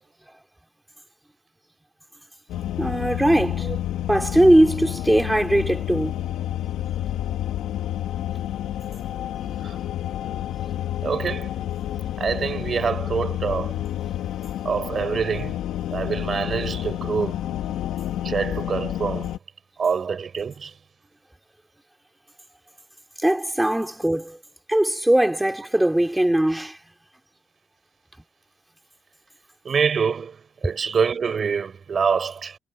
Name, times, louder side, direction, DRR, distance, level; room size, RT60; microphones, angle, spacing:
sound 1, 2.5-19.4, left 12 dB, 80° left, 2.2 m, -29 dB
voice 1, 2.8-3.7 4.1-6.1 23.2-24.4 24.7-26.8 30.6-30.7, right 1 dB, 5° right, 5.7 m, -20 dB
voice 2, 11.0-11.5 12.2-13.7 14.6-15.6 15.9-17.5 18.2-19.3 19.8-20.7 29.7-30.4 30.6-32.6, right 6 dB, 45° right, 5.3 m, -25 dB
cardioid pair, 90°, 0 cm